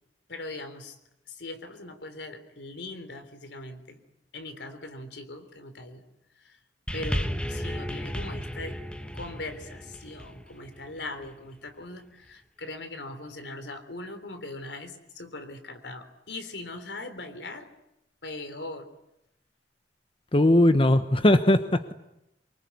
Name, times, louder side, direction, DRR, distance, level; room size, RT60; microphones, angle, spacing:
voice 1, 0.3-1.0 1.3-4.0 4.3-6.0 6.4-6.6 6.9-8.8 9.1-17.7 18.2-18.9, left 2 dB, 85° left, 9 dB, 3.6 m, -40 dB
sound 1, 6.9-11.4 12.3-12.4, equal, 5° left, 1.3 m, -34 dB
voice 2, 20.3-21.9, left 1 dB, 30° left, 10 dB, 1.1 m, -19 dB
25.5 x 23.5 x 9.7 m, 0.85 s
head